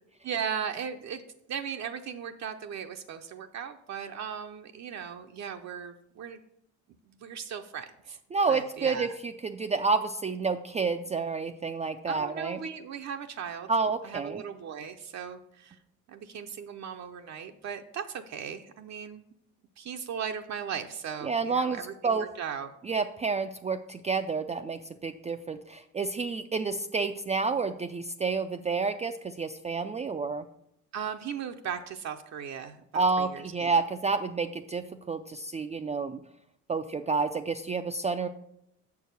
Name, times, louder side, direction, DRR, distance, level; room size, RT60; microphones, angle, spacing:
voice 1, 0.2-1.2 1.5-6.4 7.1-8.2 8.5-9.2 12.1-13.7 14.0-15.8 16.1-19.2 19.8-22.7 30.9-33.7, right 7 dB, 65° right, 5 dB, 0.6 m, -37 dB
voice 2, 8.3-12.6 13.7-14.4 21.2-22.3 22.8-30.4 32.9-36.2 36.7-38.3, right 4 dB, 25° right, 6 dB, 0.4 m, -29 dB
6.9 x 4.7 x 6.7 m, 0.77 s
cardioid pair, 90°, 30 cm